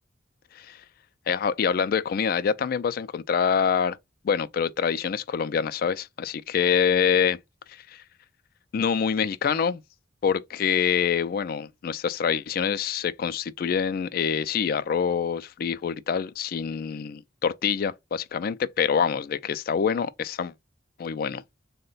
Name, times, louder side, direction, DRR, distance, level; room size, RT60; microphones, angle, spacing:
voice 1, 1.3-4.0 4.2-7.4 7.7-8.0 8.7-9.8 10.2-20.5 21.0-21.4, left 7 dB, 50° left, 0.3 m, -26 dB
3.8 x 2.1 x 3.9 m
head